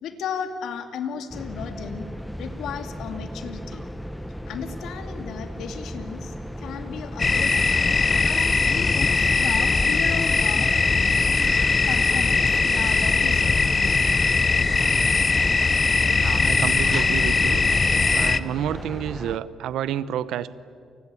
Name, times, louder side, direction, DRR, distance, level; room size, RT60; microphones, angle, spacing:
voice 1, 0.0-2.1 2.4-3.8 4.5-7.6 8.2-10.7 11.5-11.6 11.9-13.6, left 7 dB, 80° left, 7 dB, 2.4 m, -34 dB
sound 1, 1.3-19.4, equal, 5° left, 0.9 m, -36 dB
sound 2, 7.2-18.4, left 4 dB, 30° left, 0.8 m, -20 dB
voice 2, 16.2-17.7 18.1-20.5, right 10 dB, 80° right, 17 dB, 0.8 m, -29 dB
28.5 x 20.5 x 8.5 m, 2.3 s
cardioid pair, 90°, 0 cm